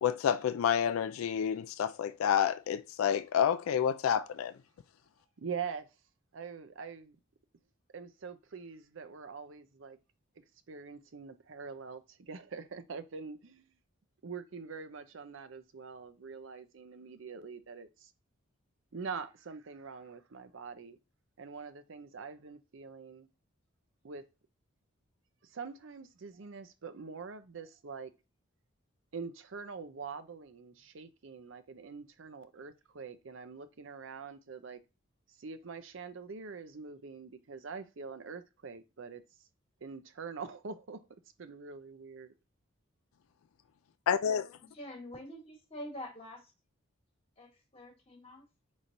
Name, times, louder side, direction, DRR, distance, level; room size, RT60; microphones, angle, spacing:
voice 1, 0.0-4.5 44.1-44.5, left 8 dB, 85° left, 0.3 m, -29 dB
voice 2, 5.4-5.9 6.3-7.2 7.9-10.0 10.7-13.7 14.2-18.1 18.9-21.0 21.4-23.3 24.0-24.2 25.4-28.1 29.1-34.8 35.4-39.2 39.8-41.0 41.4-42.3, right 5 dB, 70° right, 0.6 m, -44 dB
voice 3, 44.7-46.5 47.4-48.4, left 1 dB, 30° left, 1.3 m, -46 dB
5.4 x 3.1 x 2.6 m
head